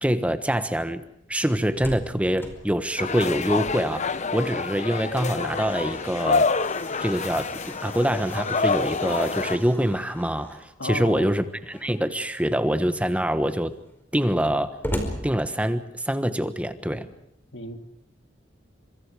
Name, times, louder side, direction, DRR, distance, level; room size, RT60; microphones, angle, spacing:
voice 1, 0.0-1.0 1.3-6.5 7.0-13.7 14.1-14.7 15.2-17.1, equal, 5° right, 10 dB, 1.3 m, -25 dB
Slam, 1.7-4.2 4.5-4.6 5.1-10.7 11.6-12.2 12.7-12.8 13.0-16.1, equal, 10° left, 4.8 m, -39 dB
sound 1, 3.0-9.6, left 4 dB, 40° left, 1.0 m, -27 dB
voice 2, 10.8-11.3 17.5-17.8, left 2 dB, 70° left, 6 dB, 3.0 m, -33 dB
30.0 x 26.5 x 4.9 m, 0.76 s
head